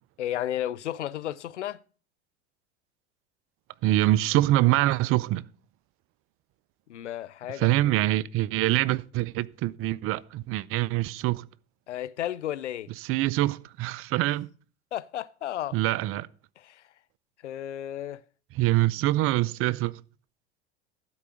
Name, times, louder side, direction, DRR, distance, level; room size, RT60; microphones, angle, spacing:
voice 1, 0.2-1.8 6.9-7.7 11.9-12.9 14.9-15.8 16.6-16.8 17.4-18.2, left 12 dB, 85° left, 0.6 m, -33 dB
voice 2, 3.8-5.4 7.6-11.5 13.1-14.5 15.7-16.3 18.6-20.0, right 16 dB, 40° right, 0.5 m, -24 dB
12.0 x 4.7 x 6.9 m
hypercardioid pair, 80°, 34 cm